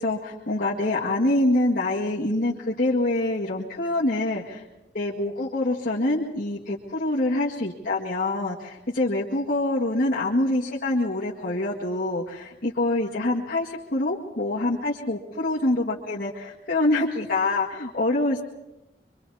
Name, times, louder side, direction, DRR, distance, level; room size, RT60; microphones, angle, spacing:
voice 1, 0.0-4.6 4.9-18.4, left 2 dB, 50° left, -5 dB, 1.9 m, -25 dB
25.0 x 25.0 x 4.2 m, 0.95 s
head